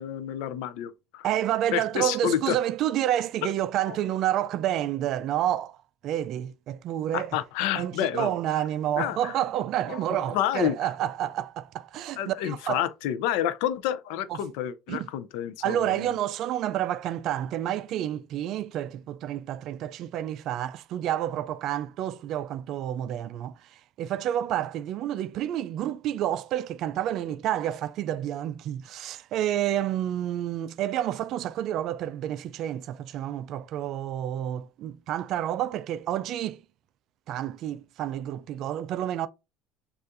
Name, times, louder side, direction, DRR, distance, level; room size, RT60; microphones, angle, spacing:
voice 1, 0.0-1.2 1.7-2.6 3.9-4.0 7.1-8.6 9.0-9.3 9.9-11.1 12.2-16.1, left 11 dB, 75° left, 0.4 m, -29 dB
voice 2, 1.2-5.8 6.0-7.4 7.8-12.8 14.3-14.4 14.9-15.1 15.6-36.6 37.3-39.3, right 11 dB, 50° right, 0.3 m, -29 dB
6.6 x 2.4 x 2.5 m
cardioid pair, 135°, 0 cm